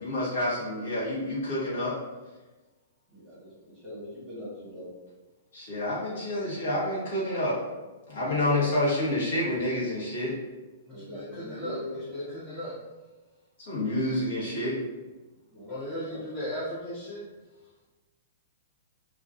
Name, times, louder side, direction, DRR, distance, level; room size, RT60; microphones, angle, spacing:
voice 1, 0.0-2.0 5.5-7.6 8.1-10.4 13.6-14.8, left 1 dB, 70° left, -6 dB, 1.0 m, -28 dB
voice 2, 3.1-4.9 8.2-8.7 10.9-12.3 15.5-16.2, left 1 dB, 5° right, -11 dB, 1.1 m, -41 dB
voice 3, 10.8-11.8 12.1-12.7 15.7-17.2, equal, 20° left, -8 dB, 0.5 m, -36 dB
2.4 x 2.2 x 2.5 m, 1.2 s
hypercardioid pair, 170°, 0 cm